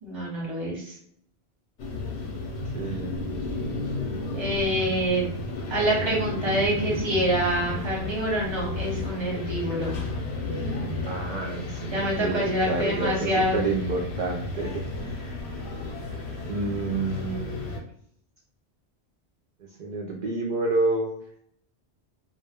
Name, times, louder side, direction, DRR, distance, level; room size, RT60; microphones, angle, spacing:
voice 1, 0.0-0.9 4.3-5.2 5.7-10.0 11.9-13.6, right 1 dB, 30° right, -3 dB, 0.9 m, -26 dB
sound 1, 1.8-17.8, left 2 dB, 80° left, 0.9 m, -32 dB
voice 2, 2.7-3.3 11.1-15.4 16.4-17.8 19.8-21.2, right 3 dB, 55° right, -1 dB, 0.5 m, -29 dB
2.1 x 2.1 x 3.4 m, 0.66 s
omnidirectional pair, 1.1 m